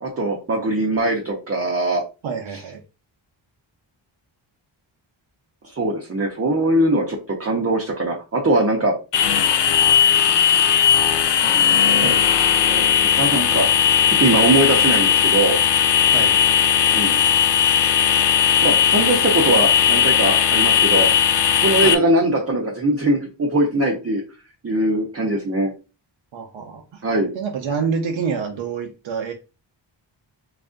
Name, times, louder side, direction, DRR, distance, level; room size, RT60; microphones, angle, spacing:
voice 1, 0.0-2.0 5.6-9.0 11.4-12.2 12.6-13.7 14.2-15.6 16.9-17.2 18.6-21.1 21.6-24.2 24.6-25.7 27.0-27.3, right 1 dB, 30° right, -2 dB, 0.7 m, -21 dB
voice 2, 2.2-2.8 12.0-12.2 16.1-16.4 21.8-22.0 26.3-27.0 27.3-29.3, right 6 dB, 70° right, 3 dB, 0.6 m, -27 dB
sound 1, 9.1-21.9, left 8 dB, 60° left, 0.5 m, -17 dB
3.2 x 2.5 x 3.7 m, 0.31 s
wide cardioid pair, 115°, 48 cm